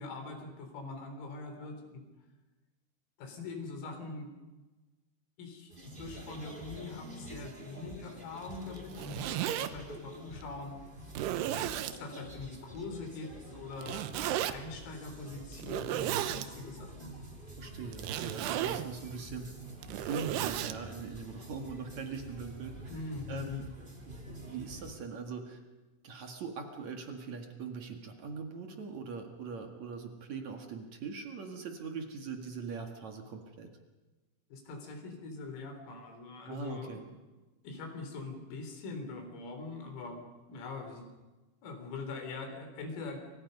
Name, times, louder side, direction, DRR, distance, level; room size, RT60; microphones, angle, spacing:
voice 1, 0.0-2.0 3.2-4.3 5.4-5.7 6.0-10.8 12.0-17.1 22.9-23.6 34.5-37.2 37.6-41.0 41.6-43.2, left 3 dB, 85° left, 5 dB, 6.6 m, -43 dB
sound 1, 5.7-24.9, right 1 dB, 15° right, 1.9 m, -48 dB
Zipper (clothing), 8.8-9.7 10.4-10.5 11.1-12.0 13.8-14.5 15.6-16.5 17.9-18.9 19.7-20.8, right 12 dB, 80° right, 2.5 m, -34 dB
voice 2, 17.6-19.5 20.1-22.7 23.3-23.7 24.0-25.6 26.0-33.7 36.5-37.0, right 5 dB, 55° right, 4 dB, 2.1 m, -41 dB
29.5 x 25.0 x 5.5 m, 1.2 s
omnidirectional pair, 5.9 m